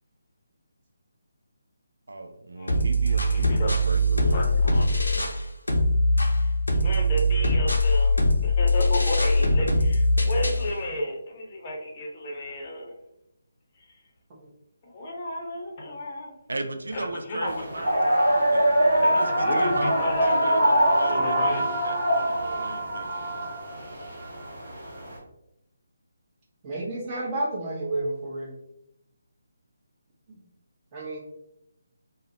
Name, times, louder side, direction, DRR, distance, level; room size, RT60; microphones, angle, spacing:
voice 1, 2.1-3.2 3.8-4.4 16.5-18.0 18.5-23.9, right 2 dB, 80° right, 6 dB, 0.3 m, -36 dB
sound 1, 2.7-5.4 5.7-10.7, left 1 dB, 90° left, 0.5 m, -22 dB
voice 2, 3.1-3.7 4.3-4.9 6.8-12.9 14.9-16.4 16.9-18.4 19.0-20.5 20.8-21.6, left 1 dB, 35° left, -1 dB, 0.6 m, -32 dB
sound 2, 17.5-25.2, right 1 dB, 55° right, 1.0 m, -24 dB
voice 3, 26.6-28.5 30.9-31.2, right 2 dB, 25° right, -4 dB, 0.7 m, -30 dB
2.4 x 2.0 x 2.7 m, 0.80 s
figure-of-eight pair, 155°, 0 cm